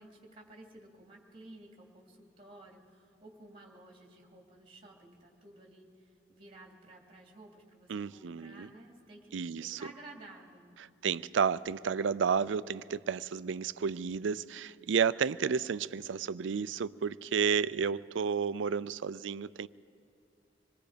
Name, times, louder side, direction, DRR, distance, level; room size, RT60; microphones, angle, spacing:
voice 1, 0.0-5.9 6.3-9.3 9.6-10.7, right 2 dB, 30° right, 2.7 m, -53 dB
voice 2, 7.9-8.7 9.3-9.8 10.8-19.7, right 6 dB, 80° right, 0.4 m, -31 dB
26.0 x 20.0 x 5.1 m
head